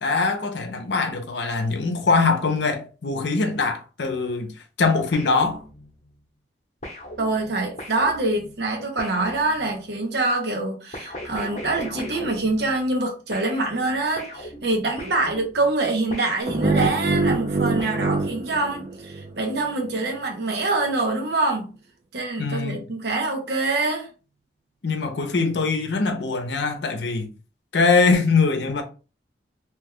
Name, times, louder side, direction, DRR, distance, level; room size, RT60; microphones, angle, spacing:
voice 1, 0.0-4.5 4.8-5.6 22.4-22.8 24.8-27.3 27.7-28.8, left 4 dB, 75° left, 0.7 m, -22 dB
sound 1, 5.1-6.1 6.8-10.0 10.9-13.0 13.3-17.1 17.8-18.8, left 1 dB, 40° left, 0.8 m, -39 dB
voice 2, 7.2-21.7 22.1-24.1, right 2 dB, 65° right, 0.7 m, -25 dB
sound 2, 16.5-19.5, right 2 dB, 35° right, 0.5 m, -24 dB
2.9 x 2.2 x 3.5 m
head